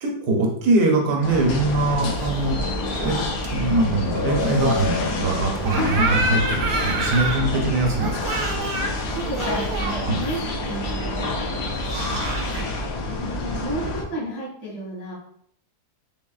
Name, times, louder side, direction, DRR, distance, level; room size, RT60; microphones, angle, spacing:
voice 1, 0.0-2.7 3.0-3.2 3.5-8.4 10.1-10.2, right 2 dB, 70° right, 0 dB, 1.3 m, -22 dB
sound 1, 1.2-14.0, left 2 dB, 85° left, 1.3 m, -28 dB
sound 2, 2.0-12.6, right 2 dB, 90° right, 1.2 m, -30 dB
sound 3, 5.9-12.7, left 2 dB, 45° left, 0.7 m, -39 dB
voice 2, 8.7-11.6 13.1-15.1, right 2 dB, 70° left, -10 dB, 2.1 m, -33 dB
4.2 x 3.3 x 2.3 m, 0.68 s
omnidirectional pair, 1.7 m